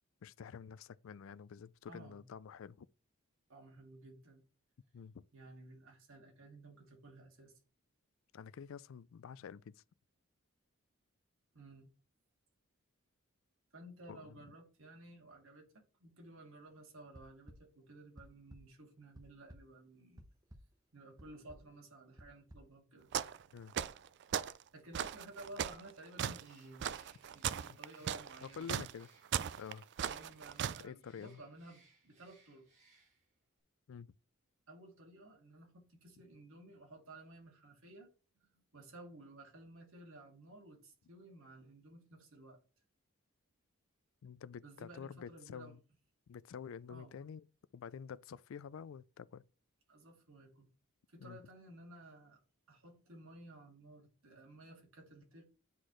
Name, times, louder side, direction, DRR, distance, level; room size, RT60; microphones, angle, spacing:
voice 1, 0.2-2.9 4.9-5.3 8.3-9.8 14.1-14.4 23.5-23.7 27.7-27.8 28.4-29.1 29.6-29.8 30.8-31.4 33.9-34.1 44.2-45.8 46.3-47.4 47.7-49.4 51.2-51.4, left 7 dB, 65° left, 0.3 m, -48 dB
voice 2, 1.9-2.2 3.5-4.4 5.3-7.5 11.5-11.9 13.7-20.2 20.9-23.1 24.7-26.9 27.3-28.7 30.0-32.7 34.7-38.1 38.5-42.6 44.6-45.8 46.9-47.1 49.9-50.7 51.1-52.4 52.7-55.4, right 2 dB, 70° right, 2.2 m, -55 dB
sound 1, 17.1-17.6 18.2-18.6 19.0-19.6 20.2-20.6 21.2-21.6 22.2-22.6, equal, 15° right, 0.9 m, -53 dB
sound 2, 23.1-23.4 23.7-24.6 24.9-30.8, right 9 dB, 55° right, 0.3 m, -38 dB
Bird, 26.3-33.4, right 3 dB, 35° right, 2.4 m, -68 dB
9.7 x 4.2 x 3.1 m
head